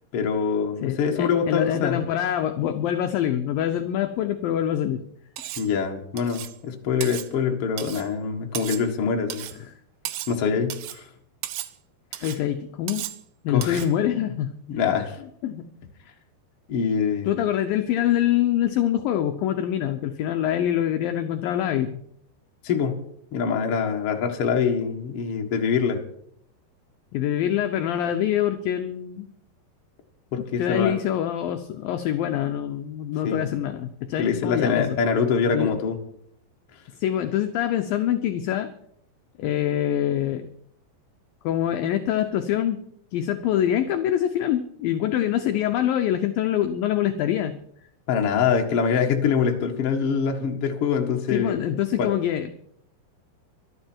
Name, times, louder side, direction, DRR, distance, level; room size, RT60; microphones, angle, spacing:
voice 1, 0.1-2.0 5.6-9.5 10.3-11.1 13.5-13.8 14.7-15.2 16.7-17.3 22.6-23.0 23.3-26.0 30.3-30.9 33.2-33.5 34.2-36.0 48.1-51.6 52.0-52.1, left 6 dB, 50° left, 2 dB, 1.8 m, -24 dB
voice 2, 0.8-5.0 9.6-9.7 12.2-13.1 13.4-14.5 15.4-15.6 17.3-22.0 27.1-29.3 30.6-35.0 35.5-35.7 37.0-38.7 39.4-40.4 41.4-42.8 43.1-47.5 51.3-52.5, left 11 dB, 80° left, 6 dB, 2.1 m, -25 dB
Cutlery silverware, 5.4-5.7 6.2-6.6 7.0-7.3 7.8-8.1 8.6-8.9 9.3-9.6 10.1-10.4 10.7-11.0 11.4-11.7 12.1-12.4 12.9-13.2 13.6-13.9, right 13 dB, 80° right, 3.0 m, -35 dB
24.5 x 9.8 x 4.5 m, 0.69 s
omnidirectional pair, 5.0 m